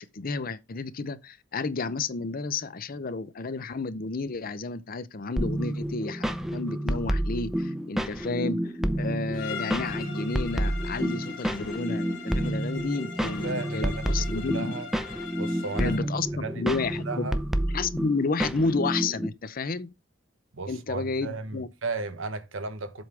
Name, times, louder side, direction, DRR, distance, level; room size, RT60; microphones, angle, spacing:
voice 1, 0.1-14.7 15.8-17.3 17.7-19.9 20.7-21.7, left 3 dB, 45° left, 0.6 m, -31 dB
sound 1, 5.4-19.3, equal, ahead, 0.7 m, -29 dB
Bowed string instrument, 9.3-16.1, left 7 dB, 90° left, 1.9 m, -41 dB
voice 2, 13.2-14.9 15.3-16.6 17.0-17.4 20.5-23.0, right 3 dB, 80° right, 1.2 m, -35 dB
7.7 x 3.5 x 6.1 m
head